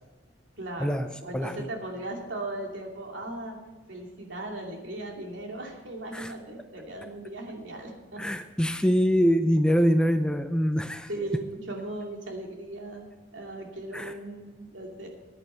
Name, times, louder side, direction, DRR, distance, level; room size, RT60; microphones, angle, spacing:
voice 1, 0.6-3.6 3.9-8.2 11.1-13.1 13.3-15.1, right 1 dB, 75° right, 0 dB, 2.6 m, -37 dB
voice 2, 1.3-1.7 6.1-6.3 8.2-11.1 13.9-14.1, equal, 5° left, 7 dB, 0.5 m, -24 dB
14.5 x 9.9 x 4.5 m, 1.2 s
head